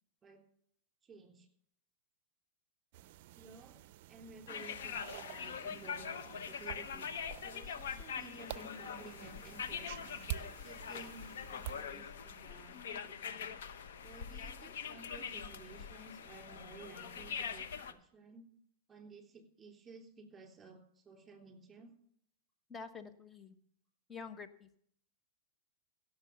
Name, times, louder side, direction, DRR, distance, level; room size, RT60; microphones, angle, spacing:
voice 1, 1.0-1.5 3.4-3.8 4.1-7.1 7.4-13.5 14.0-18.5 18.9-22.0, right 3 dB, 15° right, 4 dB, 3.4 m, -55 dB
sound 1, 2.9-11.8, right 14 dB, 55° right, 0.4 m, -49 dB
sound 2, 4.5-17.9, left 7 dB, 75° left, 1.0 m, -43 dB
voice 2, 22.7-23.6 24.1-24.8, left 5 dB, 15° left, 10 dB, 1.0 m, -48 dB
16.5 x 6.8 x 7.0 m, 0.67 s
hypercardioid pair, 125°, 0 cm